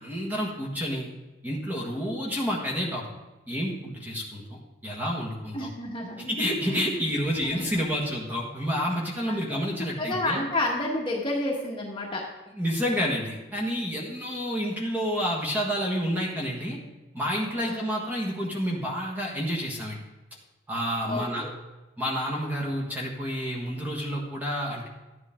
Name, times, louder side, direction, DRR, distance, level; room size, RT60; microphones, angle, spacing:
voice 1, 0.0-1.1 1.4-3.0 3.5-5.7 6.2-10.4 12.5-16.8 17.1-20.0 20.7-21.4 22.0-24.9, equal, 10° right, -3 dB, 1.6 m, -29 dB
voice 2, 5.5-6.3 6.7-6.8 7.5-7.6 9.3-9.6 10.0-12.2 17.6-17.9 21.0-21.5, left 2 dB, 25° left, -2 dB, 1.4 m, -30 dB
13.0 x 9.5 x 3.7 m, 1.1 s
head